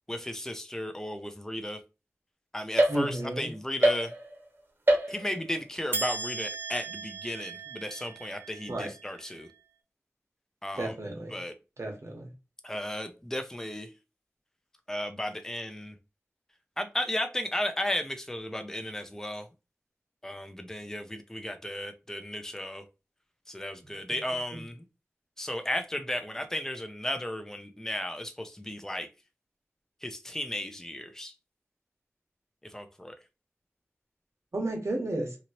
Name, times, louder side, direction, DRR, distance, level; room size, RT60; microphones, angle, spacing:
voice 1, 0.1-1.8 2.5-4.1 5.1-9.5 10.6-11.0 11.3-11.5 12.6-13.9 14.9-16.0 16.8-19.5 20.2-22.8 23.5-24.8 25.4-29.1 30.0-31.3 32.6-33.2, left 1 dB, 10° left, 0.5 m, -34 dB
sound 1, 2.8-3.4 3.8-4.5 4.9-5.5 5.9-9.4, right 1 dB, 45° right, 0.9 m, -30 dB
voice 2, 2.9-3.5 8.7-8.9 10.8-11.3 11.8-12.3 34.5-35.4, right 1 dB, 75° right, 1.1 m, -32 dB
2.9 x 2.7 x 2.8 m
wide cardioid pair, 65°, 5 cm